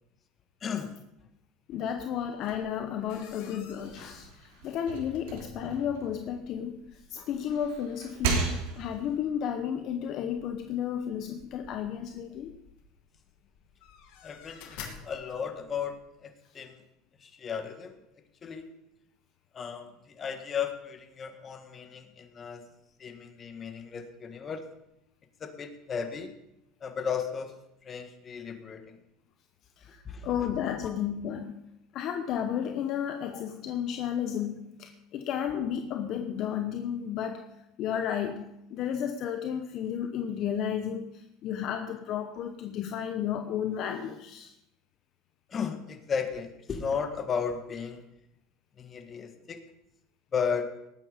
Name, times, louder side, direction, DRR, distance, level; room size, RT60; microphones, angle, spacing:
voice 1, 0.6-0.9 14.2-16.8 17.2-18.0 18.4-18.7 19.5-19.9 20.1-22.6 23.0-24.6 25.4-26.3 26.8-27.5 27.8-29.0 30.1-30.3 45.5-48.0 48.8-49.6 50.3-50.7, left 6 dB, 30° left, 1.7 m, -34 dB
voice 2, 1.7-12.5 29.8-31.6 31.9-44.5, left 9 dB, 50° left, 1.0 m, -33 dB
sound 1, 2.3-16.0, left 7 dB, 70° left, 2.6 m, -53 dB
sound 2, 3.7-6.9 7.3-9.1, right 5 dB, 80° right, 3.3 m, -35 dB
19.0 x 8.8 x 5.1 m
supercardioid pair, 125°, 0 cm